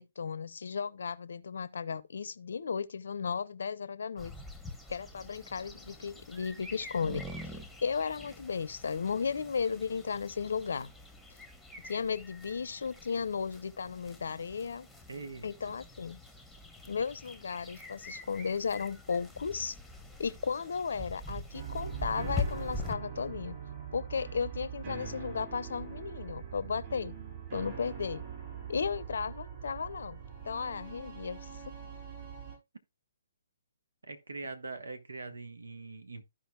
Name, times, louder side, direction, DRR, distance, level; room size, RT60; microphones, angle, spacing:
voice 1, 0.0-4.3 4.9-10.9 11.8-14.9 15.4-16.2 16.9-19.8 20.2-23.6 23.9-27.2 27.5-28.2 28.7-31.5, left 6 dB, 55° left, 0.7 m, -35 dB
sound 1, 4.2-22.9, left 2 dB, ahead, 1.2 m, -44 dB
voice 2, 15.1-15.8 34.1-36.3, right 3 dB, 65° right, 1.4 m, -43 dB
sound 2, 21.5-32.6, right 7 dB, 35° right, 4.8 m, -43 dB
14.5 x 5.1 x 2.3 m
figure-of-eight pair, 130°, 0 cm